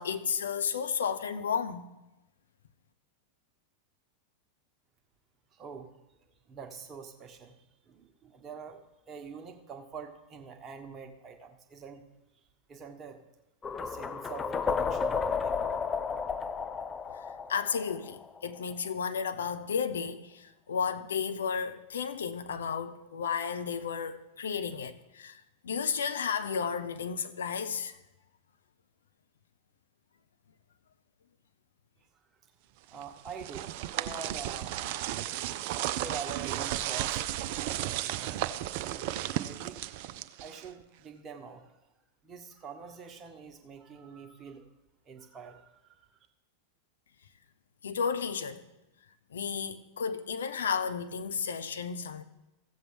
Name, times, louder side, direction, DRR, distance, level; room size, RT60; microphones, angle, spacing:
voice 1, 0.0-1.9 17.5-28.0 47.8-48.6 49.3-52.2, left 6 dB, 65° left, 0.6 m, -33 dB
voice 2, 5.5-5.9 6.5-12.0 12.7-13.2 13.8-15.7 32.4-32.5 32.9-34.8 35.7-37.2 38.0-38.4 38.9-39.8 40.4-41.6 42.2-44.6 45.0-46.1, right 5 dB, 25° right, 1.1 m, -45 dB
sound 1, 13.6-18.6, left 5 dB, 20° left, 0.4 m, -32 dB
sound 2, 33.0-40.8, right 13 dB, 45° right, 0.4 m, -34 dB
15.5 x 7.3 x 3.3 m
figure-of-eight pair, 90°, 0 cm